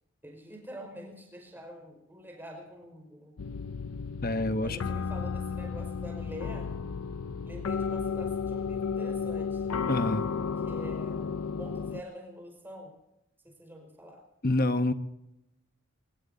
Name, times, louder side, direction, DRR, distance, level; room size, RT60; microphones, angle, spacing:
voice 1, 0.2-3.4 4.6-6.7 7.4-9.8 10.6-12.9 13.4-14.2, equal, 10° right, 4.8 m, -45 dB
sound 1, 3.4-12.0, left 5 dB, 80° left, 0.5 m, -33 dB
voice 2, 4.2-4.8 9.9-10.2 14.4-14.9, left 2 dB, 40° left, 1.0 m, -27 dB
24.0 x 20.5 x 2.7 m
head